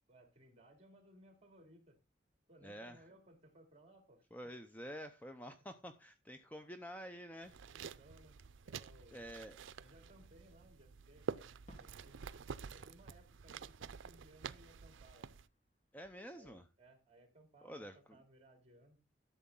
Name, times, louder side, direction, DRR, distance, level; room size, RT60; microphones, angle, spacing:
voice 1, 0.0-2.0 2.5-4.5 7.6-9.2 9.8-12.2 12.7-15.3 16.3-19.0, right 1 dB, 35° right, 2.7 m, -63 dB
voice 2, 2.6-3.0 4.3-7.6 9.1-9.6 15.9-16.6 17.6-18.0, equal, 10° left, 0.7 m, -49 dB
sound 1, 7.4-15.5, right 6 dB, 85° right, 0.5 m, -48 dB
Fireworks, 11.7-14.3 14.6-16.6, left 1 dB, 40° left, 3.0 m, -67 dB
12.5 x 7.1 x 3.8 m
head